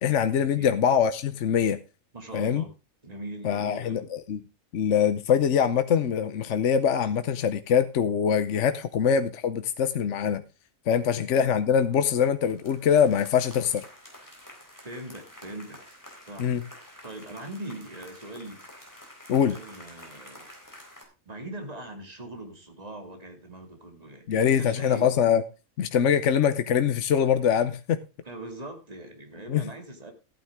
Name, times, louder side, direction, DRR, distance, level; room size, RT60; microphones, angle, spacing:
voice 1, 0.0-1.8 2.3-2.6 3.4-4.4 4.7-10.4 10.9-13.8 16.4-16.6 19.3-19.6 24.3-25.4 25.8-28.0 29.5-29.6, left 8 dB, 65° left, 1.1 m, -23 dB
voice 2, 2.1-2.7 3.0-4.0 8.9-9.1 11.1-11.3 14.8-15.8 16.2-18.6 19.5-20.5 21.3-25.1 28.2-30.1, right 1 dB, 30° right, 2.4 m, -41 dB
sound 1, 11.7-12.1 12.4-21.0, left 1 dB, 15° left, 3.9 m, -49 dB
14.5 x 9.2 x 3.6 m
omnidirectional pair, 1.4 m